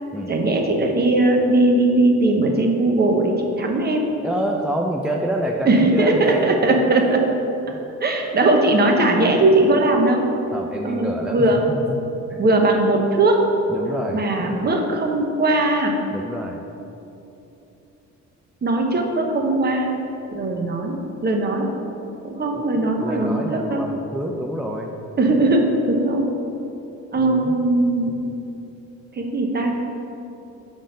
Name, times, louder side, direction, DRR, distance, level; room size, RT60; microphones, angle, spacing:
voice 1, 0.3-4.1 5.7-7.2 8.0-10.2 10.8-11.6 12.4-13.4 14.1-16.0 18.6-19.9 20.3-21.7 22.2-23.9 25.2-26.3 27.1-28.1 29.2-29.8, right 2 dB, 35° right, 2 dB, 0.8 m, -19 dB
voice 2, 4.2-7.1 7.7-7.8 10.5-11.8 12.3-12.4 13.7-14.2 16.1-16.6 22.5-24.9 27.1-27.6, right 1 dB, 5° right, 0 dB, 0.3 m, -28 dB
5.4 x 3.8 x 5.0 m, 3.0 s
cardioid pair, 90°, 30 cm